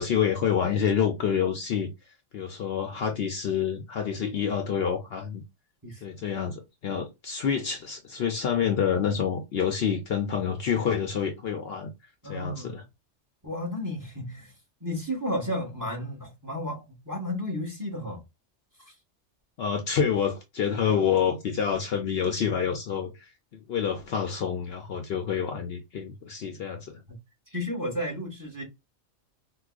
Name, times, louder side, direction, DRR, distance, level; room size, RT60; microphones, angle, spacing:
voice 1, 0.0-1.9 2.3-5.4 6.0-11.9 12.3-12.8 19.6-27.0, left 7 dB, 65° left, 0.7 m, -28 dB
voice 2, 12.2-12.8 13.4-14.5 14.8-18.2 18.8-18.9 27.5-28.6, left 1 dB, 15° right, 1.3 m, -33 dB
4.6 x 2.3 x 2.4 m
omnidirectional pair, 1.2 m